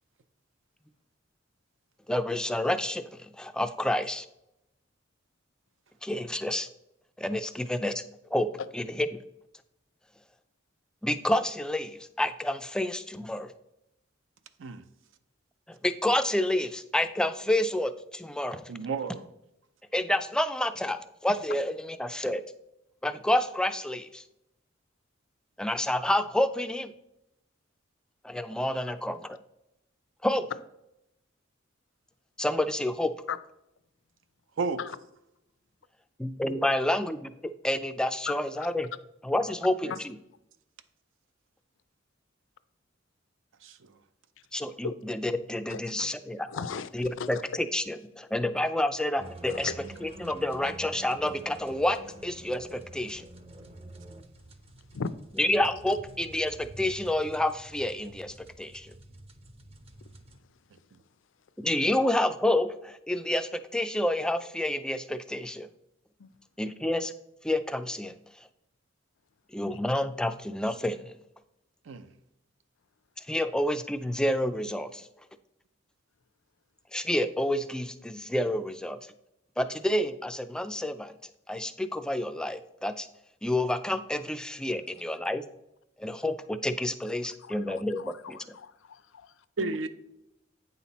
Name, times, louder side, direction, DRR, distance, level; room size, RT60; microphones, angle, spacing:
voice 1, 2.1-4.3 6.0-6.7 7.2-8.0 8.3-8.5 8.7-9.2 11.0-13.5 15.7-18.7 19.9-22.4 23.0-24.2 25.6-26.9 28.2-29.4 30.2-30.5 32.4-33.1 36.2-38.9 39.2-40.2 44.5-46.5 46.9-49.7 50.0-53.3 55.4-58.9 61.6-65.7 66.6-67.1 67.4-68.5 69.5-71.1 73.3-75.1 76.9-79.0 79.6-81.1 81.5-83.1 83.4-85.4 86.0-88.4, left 1 dB, 5° left, 0.3 m, -29 dB
voice 2, 18.7-19.3 34.6-34.8 39.8-39.9 43.6-43.8 71.9-72.1 89.6-89.9, right 4 dB, 70° right, 0.5 m, -32 dB
voice 3, 44.8-45.2 45.7-46.1 46.5-46.9 47.2-47.4 49.5-49.7 54.9-55.2 66.2-66.3 84.7-84.8 87.4-89.3 89.6-89.8, left 5 dB, 70° left, 0.5 m, -37 dB
sound 1, 49.2-60.4, right 1 dB, 30° right, 0.6 m, -48 dB
8.7 x 5.8 x 4.1 m
head